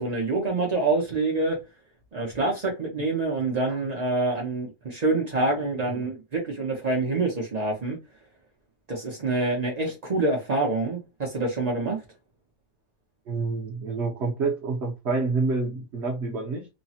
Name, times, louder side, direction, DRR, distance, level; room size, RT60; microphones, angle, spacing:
voice 1, 0.0-1.6 2.1-8.0 8.9-12.0, right 2 dB, 90° right, 0.3 m, -26 dB
voice 2, 13.3-16.7, right 4 dB, 65° right, 0.7 m, -28 dB
3.2 x 2.0 x 2.7 m
omnidirectional pair, 1.8 m